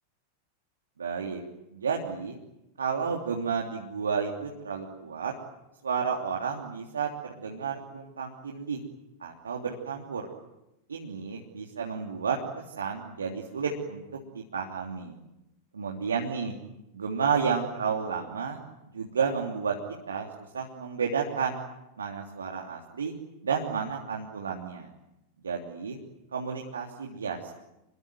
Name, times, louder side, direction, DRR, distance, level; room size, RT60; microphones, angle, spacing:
voice 1, 1.0-1.4 1.7-2.4 2.8-5.3 5.8-8.8 9.2-10.3 10.9-12.4 12.8-14.0 14.3-15.1 15.8-16.5 16.9-18.6 18.9-19.7 20.1-20.3 20.5-21.6 22.0-23.1 23.4-24.9 25.4-26.0 26.3-27.5, right 6 dB, 70° right, 0 dB, 3.2 m, -31 dB
28.5 x 22.0 x 9.2 m, 0.91 s
figure-of-eight pair, 90°, 0 cm